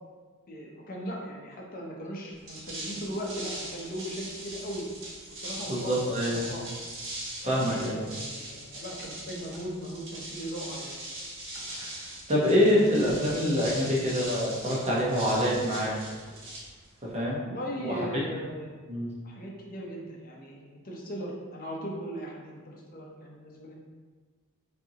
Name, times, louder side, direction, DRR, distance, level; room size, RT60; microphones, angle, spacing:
voice 1, 0.5-4.9 5.4-6.7 7.4-11.0 17.4-18.8 19.2-23.7, equal, 45° left, -2 dB, 0.7 m, -38 dB
sound 1, 2.3-17.2, right 1 dB, 65° right, 1.1 m, -41 dB
voice 2, 5.7-6.5 7.4-8.0 11.7-15.9 17.1-17.4 17.8-17.9 18.9-19.1, equal, 30° right, -5 dB, 0.9 m, -26 dB
5.3 x 2.7 x 2.8 m, 1.5 s
head